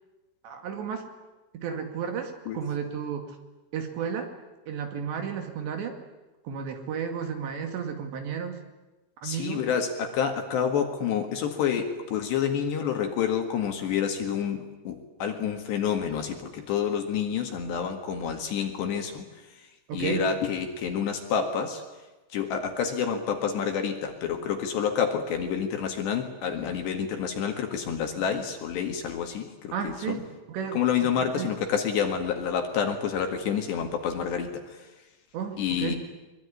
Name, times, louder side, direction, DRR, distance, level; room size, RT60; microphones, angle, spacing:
voice 1, 0.4-1.1 1.5-3.4 3.7-4.3 4.7-6.0 6.4-8.6 9.2-9.6 19.9-20.2 29.7-31.5 35.3-36.0, right 7 dB, 65° right, 5 dB, 4.2 m, -33 dB
voice 2, 9.2-19.3 19.9-21.8 22.3-30.2 30.7-34.8 35.6-36.0, left 7 dB, 65° left, 5 dB, 3.7 m, -28 dB
23.5 x 23.0 x 9.9 m, 1.1 s
omnidirectional pair, 6.0 m